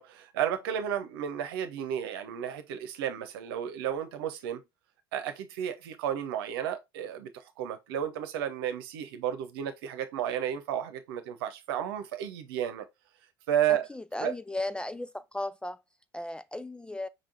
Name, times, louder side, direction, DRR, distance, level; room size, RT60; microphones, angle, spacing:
voice 1, 0.0-4.6 5.1-12.9 13.5-13.9 14.2-14.3, right 10 dB, 65° right, 1.0 m, -32 dB
voice 2, 13.9-15.8 16.1-17.1, left 1 dB, 5° left, 0.3 m, -35 dB
5.5 x 3.7 x 2.5 m
figure-of-eight pair, 70°, 13 cm